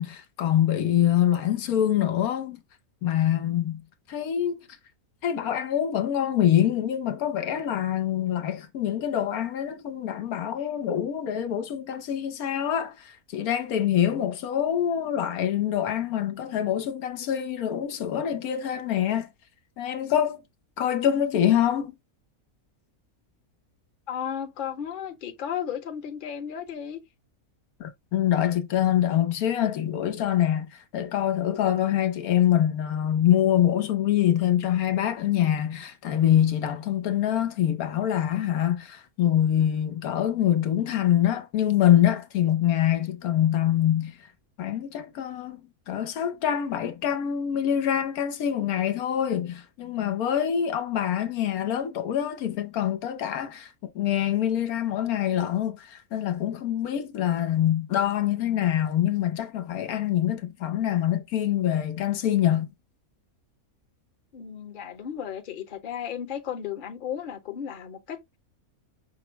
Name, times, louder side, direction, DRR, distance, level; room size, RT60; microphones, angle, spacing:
voice 1, 0.0-2.6 3.0-3.8 4.1-4.7 5.2-19.3 19.8-20.4 20.8-21.9 27.8-44.2 44.6-45.6 45.9-53.7 53.9-62.7, left 10 dB, 90° left, 1.3 m, -25 dB
voice 2, 24.1-27.0 64.3-68.4, left 9 dB, 45° left, 0.8 m, -34 dB
5.9 x 2.0 x 4.3 m
omnidirectional pair, 1.5 m